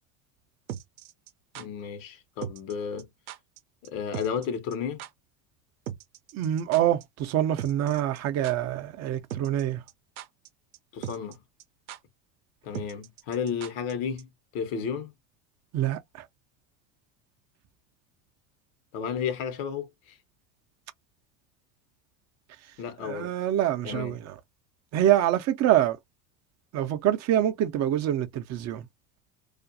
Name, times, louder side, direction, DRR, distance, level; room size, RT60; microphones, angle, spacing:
sound 1, 0.7-1.7 2.4-2.7 3.0-3.1 3.3-3.6 3.8-3.9 4.1-4.5 4.7-4.8 5.0-5.1 5.9-7.0 7.3-7.4 7.6-8.2 8.4-8.5 9.3-9.6 9.9-10.5 10.7-10.8 11.0-11.3 11.6-11.7 11.9-12.0 12.7-13.9 14.2-14.3, right 11 dB, 85° right, 0.6 m, -38 dB
voice 1, 1.6-3.1 3.8-5.0 10.9-11.4 12.6-15.1 18.9-20.2 22.8-23.3 23.8-24.2, left 7 dB, 70° left, 0.9 m, -33 dB
voice 2, 6.3-9.8 15.7-16.2 23.0-24.3 24.9-26.0 26.7-28.9, right 12 dB, 40° right, 0.5 m, -25 dB
2.4 x 2.2 x 2.5 m
hypercardioid pair, 95°, 42 cm